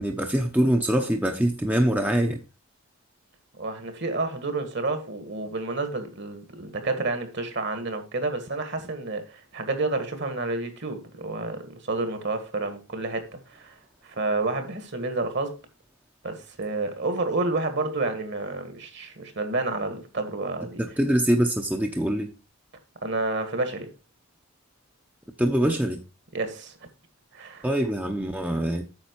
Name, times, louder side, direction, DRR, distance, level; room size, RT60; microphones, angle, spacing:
voice 1, 0.0-2.4 20.8-22.3 25.4-26.0 27.6-28.8, right 1 dB, 5° right, 0.8 m, -24 dB
voice 2, 3.6-13.8 14.0-15.6 16.2-20.8 23.0-23.9 26.3-26.8 27.3-27.7, right 2 dB, 50° right, 1.8 m, -30 dB
8.9 x 6.3 x 4.6 m
head